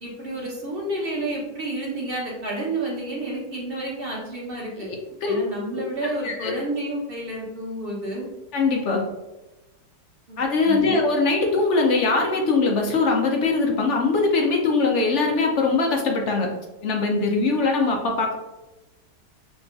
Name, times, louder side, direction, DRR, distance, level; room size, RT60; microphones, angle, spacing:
voice 1, 0.0-4.9 5.3-8.3 10.3-10.4 10.6-11.0, right 1 dB, 40° right, -4 dB, 1.0 m, -30 dB
voice 2, 8.5-9.0 10.4-16.5 16.8-18.3, left 3 dB, 65° left, 1 dB, 0.7 m, -21 dB
6.2 x 2.3 x 2.5 m, 1.0 s
omnidirectional pair, 1.9 m